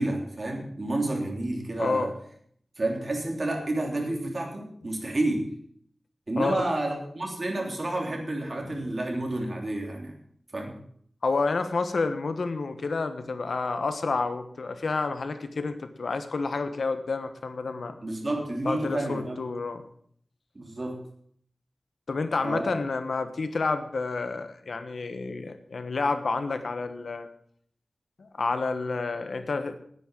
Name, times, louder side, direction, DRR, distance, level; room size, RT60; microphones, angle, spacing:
voice 1, 0.0-2.1 2.8-5.5 6.3-10.1 10.5-10.8 18.0-19.4 20.6-21.0 22.4-22.7, right 1 dB, 40° right, 1 dB, 3.4 m, -30 dB
voice 2, 1.8-2.1 6.4-6.6 8.6-8.7 11.2-18.0 18.6-19.8 22.1-27.3 28.2-29.8, left 3 dB, 80° left, 9 dB, 1.2 m, -29 dB
10.0 x 9.8 x 7.7 m, 0.63 s
wide cardioid pair, 100°, 0 cm